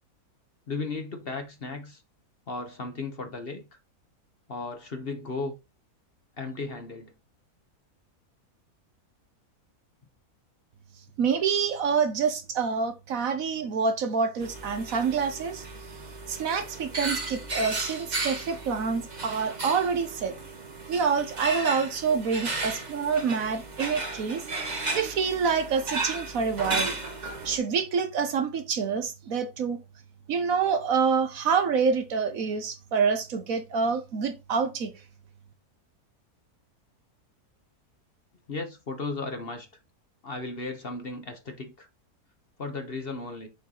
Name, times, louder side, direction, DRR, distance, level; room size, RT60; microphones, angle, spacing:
voice 1, 0.7-2.0 2.5-3.6 4.5-5.5 6.4-7.1 38.5-39.7 40.2-41.9 42.6-43.5, left 3 dB, 40° left, 1.2 m, -35 dB
voice 2, 11.2-15.6 16.3-20.4 20.9-24.4 24.9-26.9 27.4-29.8 30.3-34.9, right 5 dB, 65° right, 1.3 m, -27 dB
sound 1, 14.4-27.6, right 2 dB, 30° right, 1.3 m, -34 dB
6.8 x 4.6 x 3.8 m
omnidirectional pair, 1.6 m